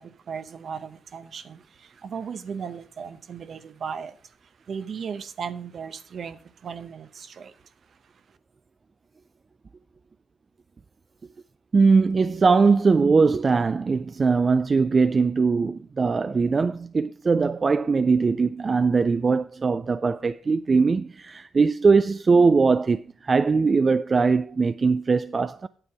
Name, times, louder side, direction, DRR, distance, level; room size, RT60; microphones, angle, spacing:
voice 1, 0.0-8.4, right 6 dB, 65° right, 0.8 m, -37 dB
voice 2, 11.7-25.7, right 4 dB, 45° right, 0.4 m, -21 dB
8.9 x 7.8 x 4.7 m
supercardioid pair, 50°, 0 cm